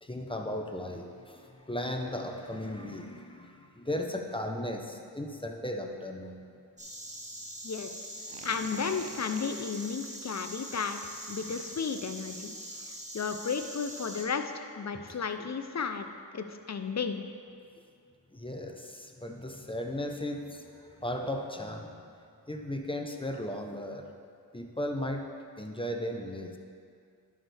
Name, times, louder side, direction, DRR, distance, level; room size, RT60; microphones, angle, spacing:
voice 1, 0.0-6.4 15.4-15.5 18.3-22.1 22.5-24.1 24.5-25.2 25.6-26.6, left 1 dB, 10° left, 3 dB, 0.9 m, -36 dB
Insect, 6.8-14.2, right 1 dB, 15° right, 1.6 m, -43 dB
sound 1, 8.2-9.7 11.5-12.0, right 5 dB, 65° right, 0.8 m, -49 dB
voice 2, 8.4-12.5 13.1-17.2, left 5 dB, 40° left, 8 dB, 0.6 m, -34 dB
11.0 x 6.4 x 3.4 m, 2.3 s
cardioid pair, 40°, 43 cm